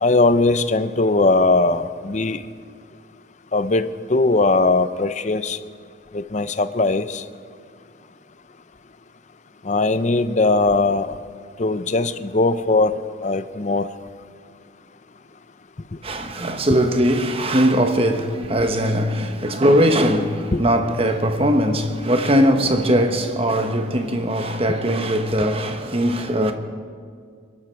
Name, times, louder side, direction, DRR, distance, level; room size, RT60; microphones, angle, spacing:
voice 1, 0.0-2.4 3.5-5.6 6.1-7.2 9.6-11.2 11.6-12.9 13.2-13.9 20.5-20.6, left 3 dB, 35° left, 0.6 m, -19 dB
voice 2, 16.0-26.5, equal, 30° right, 1.1 m, -20 dB
23.0 x 13.0 x 4.6 m
head